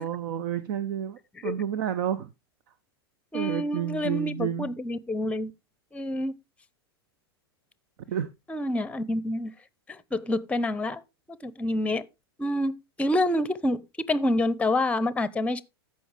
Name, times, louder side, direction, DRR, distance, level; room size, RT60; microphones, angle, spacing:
voice 1, 0.0-2.3 3.3-4.7 8.1-8.3, right 9 dB, 60° right, 0.7 m, -30 dB
voice 2, 3.3-5.5 5.9-6.3 8.5-9.5 9.9-11.0 11.4-12.1 12.4-13.8 14.1-15.6, left 1 dB, 10° left, 0.7 m, -27 dB
14.0 x 5.4 x 3.4 m
hypercardioid pair, 95°, 13 cm